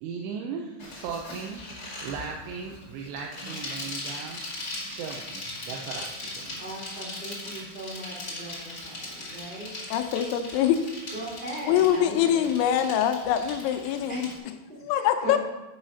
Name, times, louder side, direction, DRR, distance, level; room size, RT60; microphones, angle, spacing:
voice 1, 0.0-1.6 2.0-4.4 4.9-6.6, right 6 dB, 80° right, 0 dB, 2.6 m, -37 dB
Bicycle, 0.8-14.4, left 1 dB, 70° left, 0.8 m, -39 dB
voice 2, 6.6-9.9 11.1-12.5 14.1-14.3 14.7-15.4, right 1 dB, 25° right, -5 dB, 0.9 m, -39 dB
voice 3, 9.9-10.8 11.7-14.3 14.9-15.4, left 10 dB, 90° left, 7 dB, 3.0 m, -24 dB
10.0 x 4.8 x 5.6 m, 1.1 s
omnidirectional pair, 5.3 m